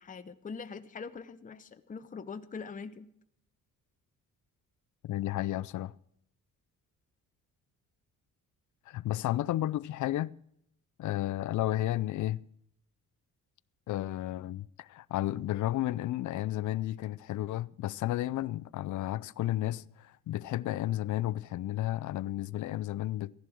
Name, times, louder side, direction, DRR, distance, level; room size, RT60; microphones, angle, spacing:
voice 1, 0.0-3.1, left 5 dB, 25° left, 0.8 m, -43 dB
voice 2, 5.0-5.9 8.9-10.3 11.0-12.4 13.9-23.3, left 14 dB, 60° left, 0.5 m, -32 dB
15.0 x 11.0 x 6.2 m
cardioid pair, 105°, 33 cm